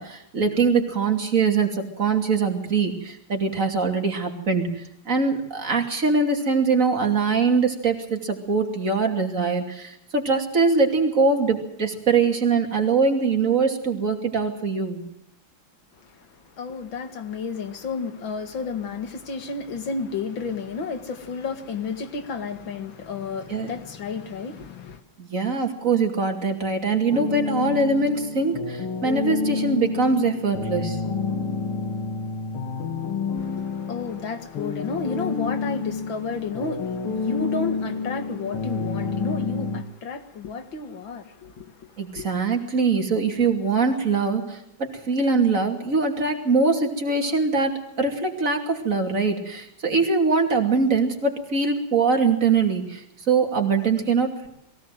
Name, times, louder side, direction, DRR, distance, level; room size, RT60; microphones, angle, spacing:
voice 1, 0.0-15.0 23.5-23.7 25.2-31.0 42.0-54.5, right 4 dB, 35° right, 3.1 m, -23 dB
voice 2, 16.0-25.0 33.3-42.3, left 4 dB, 65° left, 2.4 m, -32 dB
sound 1, 27.1-39.8, left 4 dB, 80° left, 2.6 m, -29 dB
22.5 x 17.0 x 7.7 m
omnidirectional pair, 2.4 m